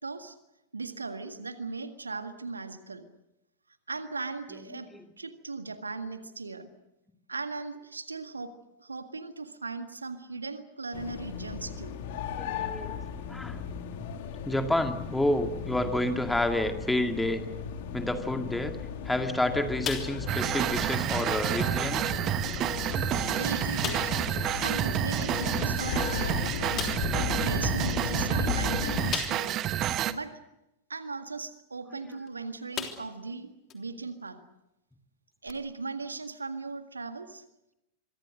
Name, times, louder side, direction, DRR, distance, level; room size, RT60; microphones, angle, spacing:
voice 1, 0.0-0.4 0.7-3.1 3.9-6.7 7.3-8.5 8.8-12.0 23.3-24.1 24.5-26.9 27.4-29.6 30.1-30.4 30.9-34.4 35.4-37.4, right 4 dB, 80° right, 9 dB, 1.8 m, -38 dB
sound 1, 10.9-29.1, left 7 dB, 50° left, 2.6 m, -35 dB
voice 2, 12.3-13.0 13.3-13.6 14.4-17.4 17.9-18.7 19.0-22.2 23.0-23.4 24.4-24.6 32.1-32.2, left 1 dB, 5° left, 6 dB, 2.3 m, -29 dB
sound 2, 19.8-20.5 20.8-21.0 21.6-21.7 22.5-22.6 23.0-23.1 23.8-24.2 25.9-26.0 26.8-27.2 29.1-29.7 30.2-30.3 32.1-32.3 32.7-33.2 33.7-33.8 35.5-35.6, left 8 dB, 30° left, 3.3 m, -36 dB
sound 3, 20.3-30.1, right 11 dB, 35° right, 1.2 m, -29 dB
26.0 x 23.5 x 6.5 m, 0.90 s
figure-of-eight pair, 90°, 0 cm